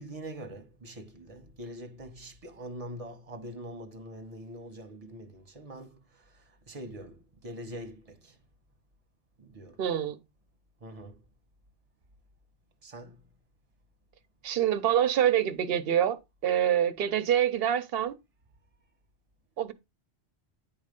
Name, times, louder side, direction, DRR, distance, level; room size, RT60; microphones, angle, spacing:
voice 1, 0.0-6.0 6.7-8.4 9.4-9.8 10.8-11.2 12.8-13.2, right 1 dB, 35° right, 1.1 m, -43 dB
voice 2, 9.8-10.2 14.4-18.1 19.6-19.7, right 10 dB, 70° right, 0.9 m, -26 dB
9.4 x 3.2 x 5.2 m
omnidirectional pair, 1.0 m